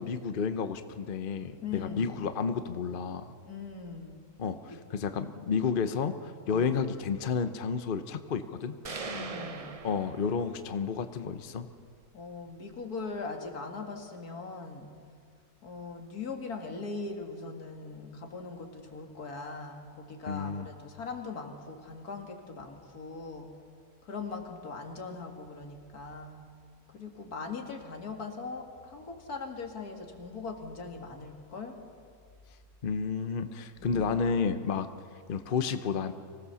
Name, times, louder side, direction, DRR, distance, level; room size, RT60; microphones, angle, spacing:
voice 1, 0.0-3.3 4.4-8.8 9.8-11.7 20.3-20.7 32.8-34.9 35.3-36.1, left 6 dB, 40° left, 10 dB, 0.9 m, -31 dB
voice 2, 1.6-2.2 3.5-4.2 6.5-6.7 9.1-9.8 12.1-14.9 15.6-23.5 24.0-26.4 26.9-31.8 33.8-34.1, left 4 dB, 85° left, 3 dB, 2.7 m, -40 dB
sound 1, 8.8-10.8, right 4 dB, 35° right, 0.7 m, -40 dB
25.5 x 17.5 x 7.0 m, 2.1 s
omnidirectional pair, 1.6 m